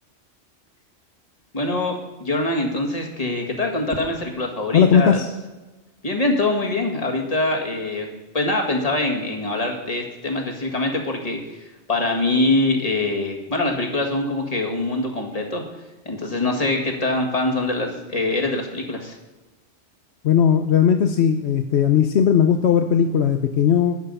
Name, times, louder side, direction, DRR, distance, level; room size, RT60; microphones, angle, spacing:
voice 1, 1.5-5.2 6.0-8.1 8.3-15.6 16.1-19.2, left 2 dB, 35° left, 1 dB, 2.0 m, -24 dB
voice 2, 4.7-5.3 20.2-24.0, left 8 dB, 70° left, 7 dB, 0.9 m, -17 dB
12.5 x 9.0 x 5.4 m, 1.1 s
omnidirectional pair, 1.2 m